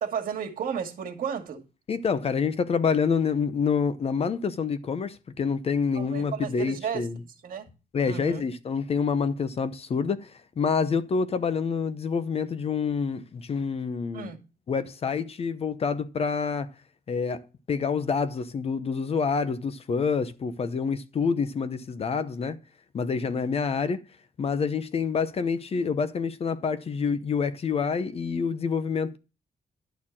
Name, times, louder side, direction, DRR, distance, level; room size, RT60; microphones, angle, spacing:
voice 1, 0.0-1.6 5.9-7.1 7.4-7.7 8.0-8.4 14.1-14.4, right 7 dB, 60° right, 2.1 m, -33 dB
voice 2, 1.9-7.2 7.9-14.3 14.7-16.7 17.1-22.6 22.9-24.0 24.4-29.2, left 5 dB, 40° left, 0.7 m, -27 dB
11.5 x 4.4 x 7.2 m
wide cardioid pair, 155°, 16 cm